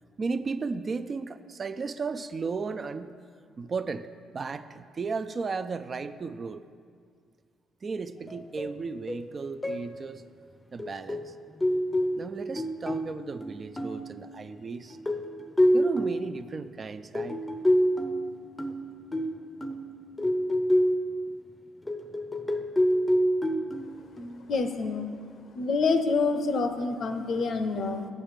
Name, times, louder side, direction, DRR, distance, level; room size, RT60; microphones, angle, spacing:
voice 1, 0.2-3.1 3.6-4.1 4.3-6.7 7.8-10.2 10.7-11.3 12.2-15.0 15.7-17.4, right 4 dB, 40° right, 11 dB, 0.3 m, -34 dB
sound 1, 8.3-8.7 9.1-9.3 9.6-9.9 10.8-14.2 14.9-16.3 17.1-21.1 21.9-24.5, equal, 15° left, 0.6 m, -27 dB
voice 2, 24.5-25.1 25.5-28.1, left 4 dB, 60° left, 7 dB, 0.6 m, -27 dB
7.4 x 6.5 x 5.1 m, 2.1 s
cardioid pair, 90°, 0 cm